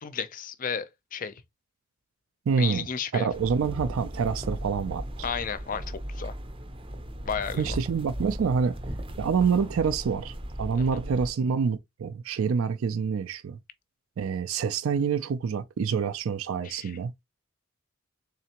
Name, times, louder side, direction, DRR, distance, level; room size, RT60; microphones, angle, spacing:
voice 1, 0.0-1.3 2.6-3.3 5.2-6.3 7.3-7.8 10.7-11.0 16.6-16.9, left 7 dB, 40° left, 0.5 m, -33 dB
voice 2, 2.5-2.9 3.1-5.3 7.6-8.8 9.2-13.6 14.2-17.1, right 6 dB, 80° right, 0.4 m, -27 dB
sound 1, 3.3-11.3, equal, 25° right, 0.6 m, -37 dB
3.7 x 3.3 x 2.8 m
head